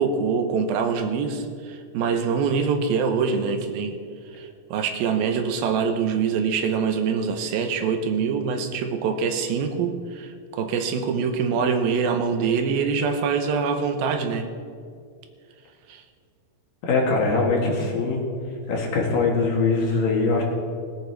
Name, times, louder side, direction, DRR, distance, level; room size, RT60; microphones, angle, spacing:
voice 1, 0.0-4.0 4.3-14.5 15.9-16.0, right 6 dB, 80° right, 6 dB, 2.6 m, -24 dB
voice 2, 16.8-18.2 18.7-20.4, left 3 dB, 65° left, -1 dB, 3.4 m, -22 dB
20.0 x 8.8 x 4.6 m, 2.2 s
omnidirectional pair, 4.4 m